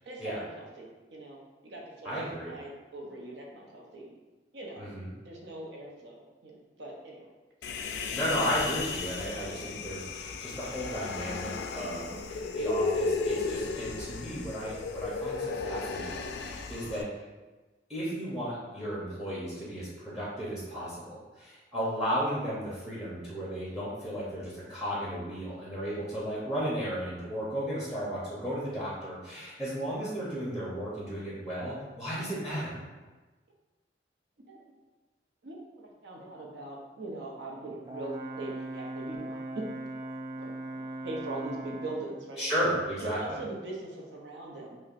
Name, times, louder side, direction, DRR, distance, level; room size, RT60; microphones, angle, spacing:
voice 1, 0.0-1.4 1.7-4.1 4.5-4.9 5.2-6.1 6.4-7.3 9.4-9.6 11.9-12.1 25.9-26.0 32.4-32.6 34.5-34.6 35.4-39.6 40.3-42.4 43.0-44.8, right 2 dB, 80° right, -2 dB, 0.7 m, -41 dB
voice 2, 2.0-2.5 4.8-5.1 8.1-17.1 17.9-32.8 42.4-43.4, equal, 5° right, -7 dB, 0.7 m, -34 dB
Human voice, 7.6-17.0, left 3 dB, 70° left, 0.3 m, -34 dB
Brass instrument, 37.8-42.1, right 1 dB, 20° right, 0.3 m, -39 dB
5.7 x 2.2 x 2.5 m, 1.2 s
head